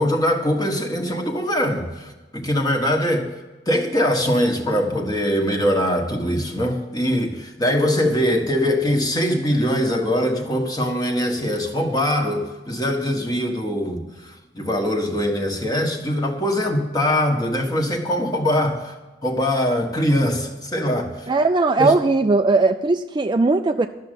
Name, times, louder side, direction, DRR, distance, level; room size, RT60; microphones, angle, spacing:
voice 1, 0.0-3.3 3.7-19.0 19.2-21.3 21.8-21.9, equal, 20° left, 2 dB, 1.5 m, -22 dB
voice 2, 21.3-23.9, right 3 dB, 25° right, 6 dB, 0.4 m, -18 dB
12.5 x 6.5 x 9.1 m, 1.2 s
head